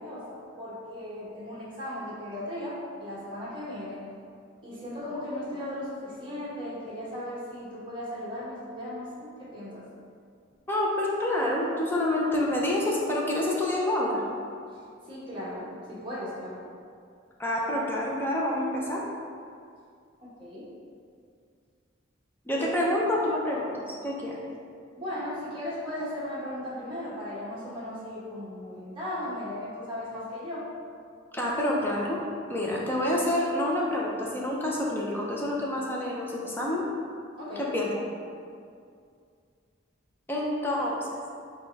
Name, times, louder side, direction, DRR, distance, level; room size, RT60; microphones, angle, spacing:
voice 1, 0.0-4.1 4.6-9.8 14.7-16.6 20.2-20.7 22.5-22.7 24.9-30.7 37.4-37.7, left 1 dB, 25° right, -8 dB, 1.1 m, -37 dB
voice 2, 10.7-14.2 17.4-19.0 22.5-24.4 31.3-32.2 32.5-36.8 37.7-37.9 40.3-41.1, left 1 dB, 10° left, -4 dB, 0.5 m, -27 dB
4.3 x 2.3 x 4.5 m, 2.3 s
head